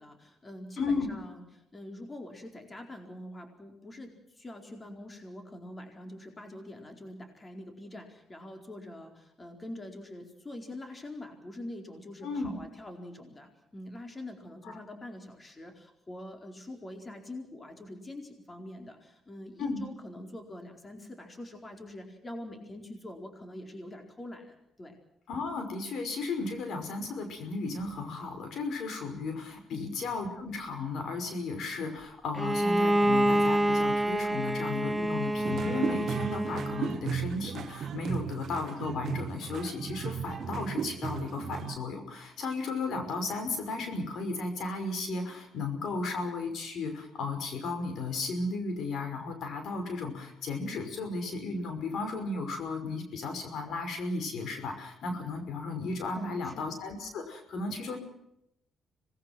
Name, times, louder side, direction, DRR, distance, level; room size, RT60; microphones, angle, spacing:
voice 1, 0.0-25.0 29.7-30.0 56.2-56.7, left 1 dB, 25° left, 4 dB, 4.4 m, -44 dB
voice 2, 0.8-1.1 12.2-12.6 14.6-14.7 19.6-19.8 25.3-58.0, left 3 dB, 70° left, 6 dB, 5.7 m, -34 dB
Bowed string instrument, 32.3-37.0, right 1 dB, 10° right, 1.1 m, -27 dB
sound 1, 35.4-41.8, right 8 dB, 60° right, 1.1 m, -36 dB
26.5 x 20.0 x 6.1 m, 0.81 s
cardioid pair, 90°, 0 cm